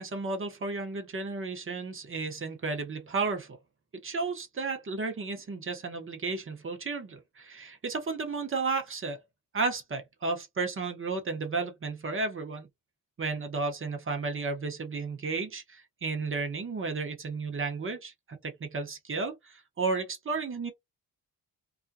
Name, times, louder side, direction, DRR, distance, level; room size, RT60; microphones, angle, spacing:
voice 1, 0.0-3.6 4.0-9.2 9.5-12.7 13.2-20.7, right 4 dB, 30° right, 0.8 m, -33 dB
2.4 x 2.1 x 2.6 m
cardioid pair, 100°, 41 cm